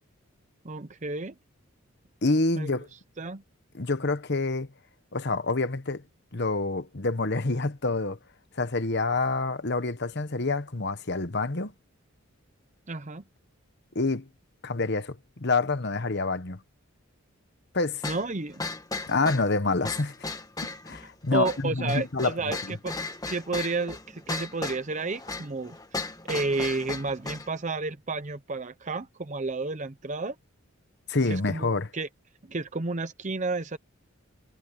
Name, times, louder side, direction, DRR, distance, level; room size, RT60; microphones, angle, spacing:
voice 1, 0.6-1.3 2.6-2.7 3.2-3.4 12.9-13.2 18.0-18.6 21.3-22.9 23.3-25.8 26.3-30.3 31.3-32.1 32.5-33.8, right 3 dB, 35° right, 0.8 m, -31 dB
voice 2, 2.2-2.9 3.7-4.7 5.1-6.0 6.3-8.2 8.6-11.7 13.9-14.3 14.6-16.6 17.7-18.1 19.1-20.1 20.6-22.3 22.7-22.8 31.1-31.9, left 3 dB, 50° left, 1.3 m, -27 dB
sound 1, 18.0-27.5, left 3 dB, 15° left, 1.6 m, -36 dB
head